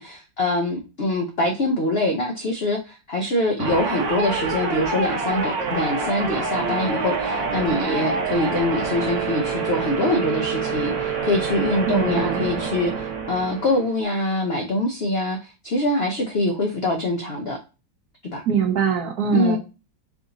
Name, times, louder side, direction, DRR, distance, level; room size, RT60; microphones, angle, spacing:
voice 1, 0.0-17.6 18.2-18.4 19.3-19.6, left 2 dB, 75° left, 2 dB, 0.5 m, -24 dB
sound 1, 3.6-14.0, right 4 dB, 85° right, 1.5 m, -26 dB
voice 2, 11.9-12.5 18.5-19.6, right 7 dB, 65° right, 2 dB, 1.2 m, -22 dB
4.8 x 2.6 x 3.9 m, 0.30 s
omnidirectional pair, 2.0 m